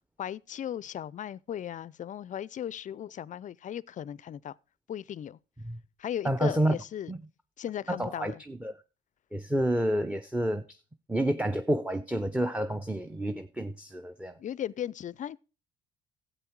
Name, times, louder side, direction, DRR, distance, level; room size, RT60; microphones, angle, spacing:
voice 1, 0.2-4.5 4.9-5.4 6.0-7.1 7.6-8.4 14.4-15.4, left 10 dB, 40° left, 0.4 m, -37 dB
voice 2, 6.2-6.8 7.1-7.2 7.9-8.7 9.3-10.8 11.1-14.4, right 1 dB, 5° right, 0.7 m, -29 dB
13.0 x 8.0 x 4.6 m
supercardioid pair, 80°, 20 cm